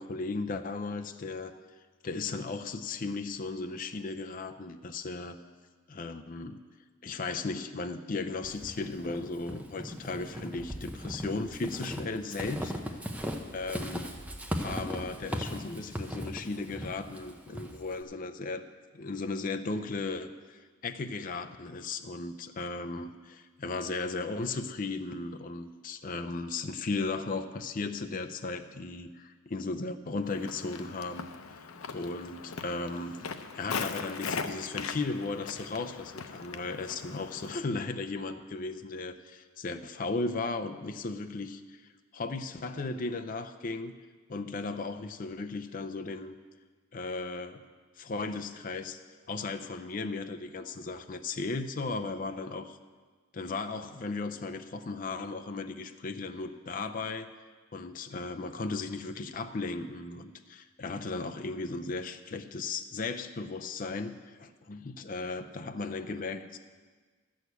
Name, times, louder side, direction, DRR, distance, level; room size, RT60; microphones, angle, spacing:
voice 1, 0.0-1.5 2.0-5.4 5.9-6.6 7.0-12.8 13.5-14.2 14.6-18.7 18.9-31.3 31.9-43.9 44.3-46.4 46.9-47.6 48.0-49.0 49.3-52.8 53.3-57.3 57.7-66.6, left 3 dB, 40° left, 7 dB, 0.5 m, -36 dB
Walk footsteps / Squeak, 8.4-18.0, equal, 5° right, 0.7 m, -38 dB
Walk footsteps, 30.2-37.6, left 5 dB, 90° left, 0.7 m, -39 dB
12.0 x 6.4 x 8.1 m, 1.4 s
head